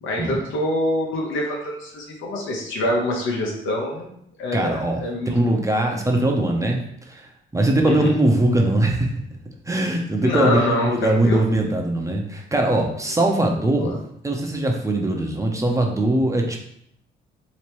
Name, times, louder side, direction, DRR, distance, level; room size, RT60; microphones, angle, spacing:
voice 1, 0.0-4.1 4.4-5.3 7.8-8.2 10.2-11.4 13.8-13.9, left 1 dB, 80° left, -1 dB, 1.0 m, -25 dB
voice 2, 4.5-9.1 9.7-13.9 14.2-16.6, right 1 dB, 15° right, 1 dB, 0.6 m, -21 dB
3.2 x 3.1 x 3.0 m, 0.71 s
cardioid pair, 90°, 20 cm